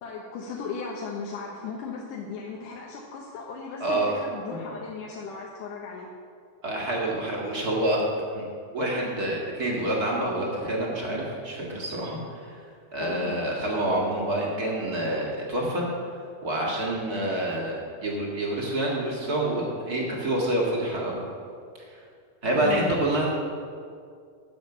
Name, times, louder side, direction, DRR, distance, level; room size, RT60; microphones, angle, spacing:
voice 1, 0.0-6.1 13.0-13.4 22.6-22.9, left 5 dB, 80° left, -2 dB, 2.5 m, -36 dB
voice 2, 3.8-4.2 6.6-8.0 8.3-8.5 8.7-12.6 12.9-15.8 16.4-21.3 21.9-22.0 22.4-23.3, right 1 dB, 40° right, -3 dB, 1.6 m, -27 dB
10.5 x 7.3 x 7.0 m, 2.3 s
omnidirectional pair, 3.8 m